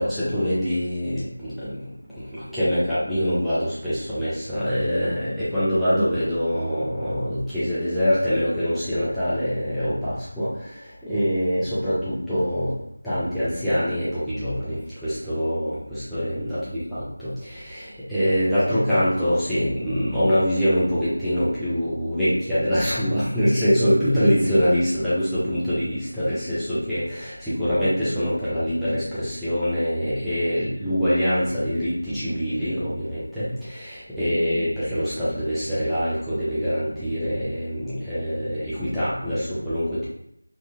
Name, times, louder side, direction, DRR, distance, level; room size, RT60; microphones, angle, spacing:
voice 1, 0.0-1.9 2.2-12.8 13.0-40.1, equal, ahead, -17 dB, 0.4 m, -24 dB
2.6 x 2.1 x 2.9 m, 0.77 s
figure-of-eight pair, 170°, 0 cm